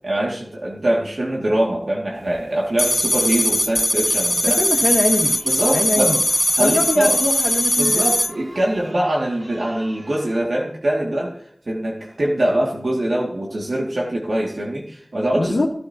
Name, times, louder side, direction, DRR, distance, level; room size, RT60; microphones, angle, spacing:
voice 1, 0.0-4.6 5.4-6.2 6.6-7.1 7.8-11.4 11.7-15.6, right 1 dB, 75° right, -2 dB, 2.3 m, -23 dB
sound 1, 2.8-8.3, left 1 dB, 15° left, 0.5 m, -20 dB
voice 2, 4.6-5.3 5.7-6.2 6.5-8.0 15.4-15.7, left 2 dB, 75° left, -4 dB, 1.9 m, -22 dB
Chatter, 5.0-10.4, right 1 dB, 35° right, 6.5 m, -44 dB
16.0 x 12.5 x 2.9 m, 0.65 s
wide cardioid pair, 45°, 0 cm